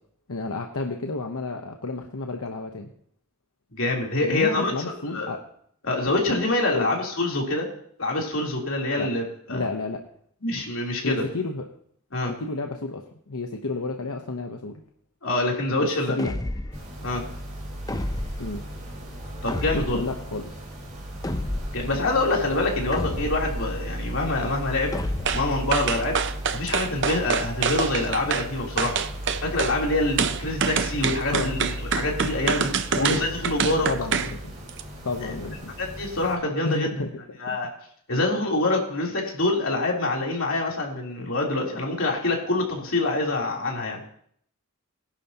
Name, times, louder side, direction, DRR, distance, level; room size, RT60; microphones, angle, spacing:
voice 1, 0.3-2.9 4.2-5.4 6.7-6.9 8.9-9.1 9.5-10.0 11.0-11.6 12.4-14.8 15.8-16.3 18.4-18.6 19.7-20.6 31.3-31.6 33.0-33.1 33.8-34.6 35.0-35.7 36.6-37.2, left 3 dB, 85° left, 3 dB, 1.0 m, -31 dB
voice 2, 3.8-4.7 5.1-5.4 5.8-7.7 8.0-9.6 10.4-11.2 12.1-12.3 15.2-16.1 17.0-17.2 19.4-20.1 21.7-24.9 25.3-26.2 26.5-29.0 29.4-33.9 35.2-35.4 35.8-36.9 37.4-37.7 38.1-44.0, left 2 dB, 65° left, -2 dB, 3.5 m, -25 dB
sound 1, 16.2-16.9 17.9-18.5 19.5-20.1 21.2-21.9 22.9-23.6 24.9-25.6, left 1 dB, 15° left, 0.6 m, -31 dB
sound 2, 16.7-36.4, equal, 35° right, 4.4 m, -35 dB
sound 3, 25.3-25.4 25.7-28.5 28.8-29.8 30.2-34.3 34.7-34.8, right 6 dB, 55° right, 0.7 m, -26 dB
21.0 x 11.5 x 3.0 m, 0.64 s
head